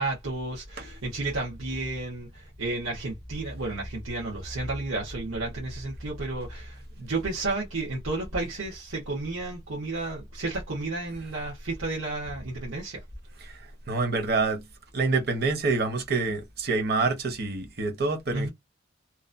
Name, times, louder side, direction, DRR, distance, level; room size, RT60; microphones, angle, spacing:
voice 1, 0.0-13.0 18.3-18.5, right 2 dB, 80° right, 1.2 m, -32 dB
voice 2, 13.9-14.6 14.9-18.5, right 3 dB, 50° right, 0.9 m, -26 dB
3.0 x 2.2 x 2.6 m
head